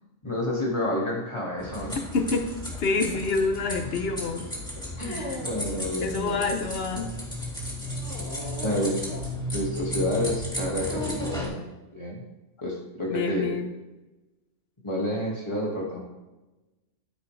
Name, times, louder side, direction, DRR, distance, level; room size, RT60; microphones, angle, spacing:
voice 1, 0.2-1.9 3.8-3.9 5.0-6.4 8.6-9.0 9.5-12.2 12.6-13.5 14.8-16.0, left 1 dB, 25° left, -3 dB, 2.0 m, -29 dB
sound 1, 1.6-11.5, left 1 dB, 5° left, 2.1 m, -34 dB
voice 2, 2.1-2.5 2.8-4.5 5.0-5.4 6.0-7.1 13.1-13.7, left 4 dB, 60° left, 6 dB, 1.0 m, -27 dB
Dog, 5.0-6.0 7.9-9.4 10.9-11.6, equal, 80° left, 2.2 m, -37 dB
13.5 x 4.9 x 3.2 m, 1.0 s
omnidirectional pair, 1.3 m